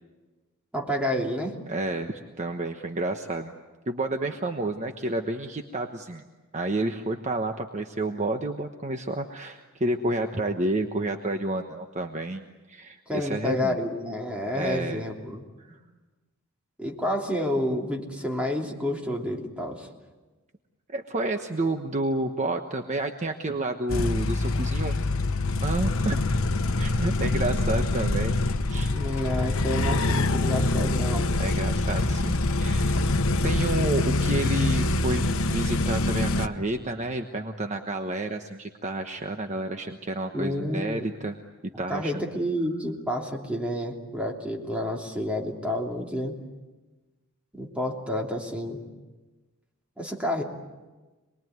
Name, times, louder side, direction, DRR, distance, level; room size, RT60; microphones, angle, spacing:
voice 1, 0.7-1.6 13.1-15.5 16.8-19.9 28.8-31.3 40.3-41.1 41.7-46.4 47.5-48.8 50.0-50.4, left 1 dB, 5° right, 0 dB, 3.2 m, -29 dB
voice 2, 1.7-3.5 3.9-6.2 6.5-13.8 14.5-15.0 15.6-15.8 20.9-25.0 25.6-26.3 26.8-28.4 28.7-28.9 31.4-33.0 33.4-41.4 41.8-42.1, right 2 dB, 35° right, 5 dB, 1.2 m, -30 dB
sound 1, 23.9-36.5, left 2 dB, 75° left, 1.0 m, -25 dB
27.0 x 21.0 x 9.5 m, 1.2 s
head